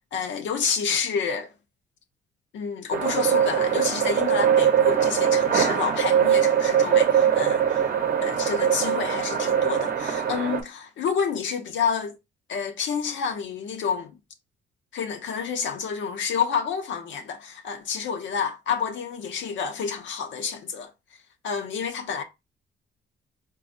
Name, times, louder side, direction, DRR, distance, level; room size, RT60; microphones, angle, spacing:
voice 1, 0.1-1.5 2.5-7.8 8.2-12.2 12.5-14.1 14.9-20.9 21.4-22.2, left 6 dB, 70° left, 0.6 m, -29 dB
sound 1, 2.9-10.6, right 8 dB, 50° right, 0.7 m, -22 dB
3.9 x 2.2 x 2.6 m
cardioid pair, 90°, 20 cm